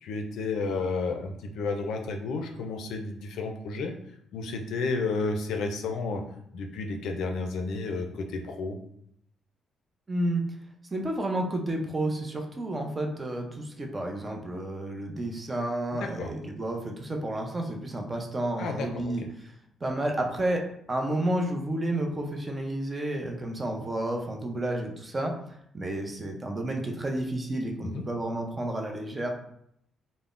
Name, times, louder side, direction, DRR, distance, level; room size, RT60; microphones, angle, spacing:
voice 1, 0.0-3.9 4.3-6.2 6.5-8.8 15.9-16.3 18.6-19.3 27.9-28.0, left 3 dB, 75° left, 4 dB, 0.4 m, -32 dB
voice 2, 10.1-10.4 10.9-19.5 19.8-20.6 20.9-25.3 25.7-29.3, right 1 dB, 25° right, 2 dB, 0.5 m, -31 dB
3.5 x 2.0 x 2.4 m, 0.71 s
cardioid pair, 90°, 0 cm